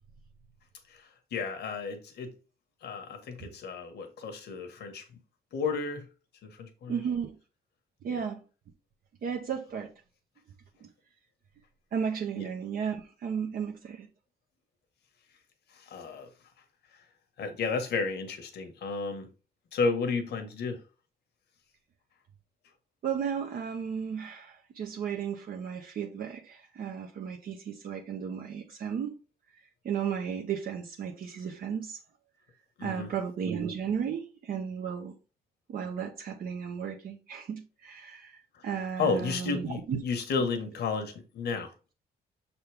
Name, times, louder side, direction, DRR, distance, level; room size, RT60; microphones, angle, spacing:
voice 1, 0.9-2.3 2.8-5.1 5.5-6.1 6.4-7.0 8.1-8.2 12.4-12.5 15.7-16.3 17.4-19.3 19.7-20.8 32.8-33.1 38.5-38.6 39.0-41.7, left 4 dB, 75° left, 1.6 m, -32 dB
voice 2, 6.9-7.4 8.0-8.4 9.2-9.9 11.9-14.1 23.0-29.1 29.8-32.0 32.8-35.1 35.7-40.0, right 7 dB, 60° right, 1.0 m, -34 dB
7.0 x 4.2 x 3.5 m
wide cardioid pair, 165°, 17 cm